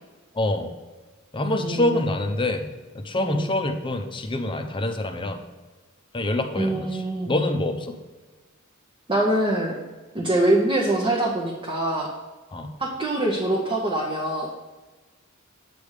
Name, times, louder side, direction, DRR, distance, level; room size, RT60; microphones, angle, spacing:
voice 1, 0.3-0.7 1.3-2.7 2.9-5.4 6.1-8.0 12.5-12.7, left 1 dB, 25° left, 5 dB, 0.7 m, -26 dB
voice 2, 1.6-2.0 3.2-3.4 6.5-7.3 9.1-9.7 10.1-12.1 12.8-14.5, right 1 dB, 25° right, -3 dB, 0.9 m, -24 dB
8.5 x 3.4 x 6.4 m, 1.3 s
head